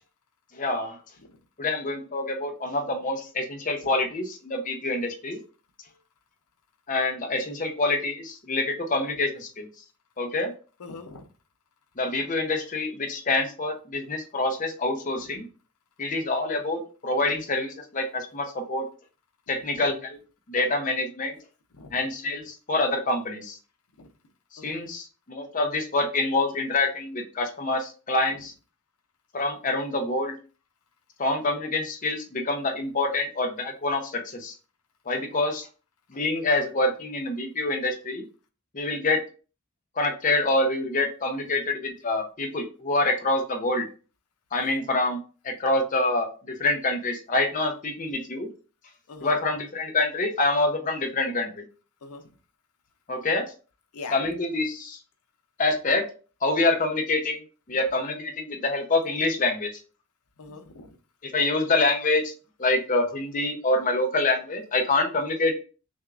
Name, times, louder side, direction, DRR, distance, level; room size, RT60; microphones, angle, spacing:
voice 1, 0.5-1.0 1.6-5.4 6.9-9.7 10.2-10.5 12.0-15.5 16.0-18.8 19.5-20.2 20.5-21.4 21.9-23.6 24.6-28.5 29.3-30.4 31.2-34.5 35.1-35.6 36.1-38.2 38.7-39.2 40.0-43.9 44.5-45.2 45.4-48.5 49.2-51.6 53.1-53.5 54.1-55.0 55.6-56.0 56.4-57.4 57.7-59.7 61.2-62.3 62.6-65.5, left 2 dB, 35° left, 4 dB, 0.7 m, -26 dB
voice 2, 10.8-11.3 19.7-19.8 21.7-22.0 24.0-24.1 24.6-24.9 44.6-44.8 49.1-49.4 52.0-52.2 53.9-54.2 60.4-61.0, left 3 dB, 85° left, 7 dB, 0.6 m, -42 dB
6.2 x 2.4 x 2.4 m, 0.36 s
head